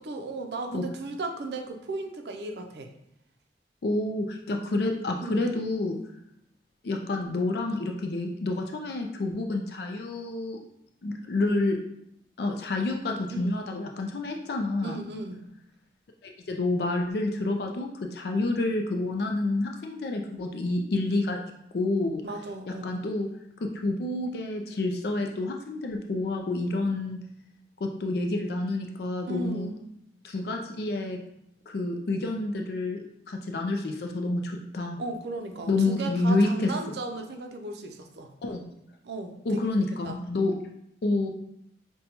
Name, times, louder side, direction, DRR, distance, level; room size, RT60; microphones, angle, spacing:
voice 1, 0.0-2.9 5.2-5.4 13.3-13.6 14.8-15.4 22.2-22.8 29.3-29.8 35.0-38.3 39.0-39.6 40.0-40.2, right 2 dB, 70° right, 4 dB, 0.5 m, -36 dB
voice 2, 3.8-6.0 6.8-10.6 11.0-11.8 12.4-15.0 16.2-21.4 21.7-22.2 22.8-23.3 23.6-27.2 27.8-29.7 30.2-31.2 31.7-33.0 33.3-35.0 35.7-36.7 38.4-38.6 39.5-40.6 41.0-41.3, left 2 dB, 60° left, 3 dB, 0.4 m, -28 dB
5.2 x 2.2 x 2.9 m, 0.76 s
head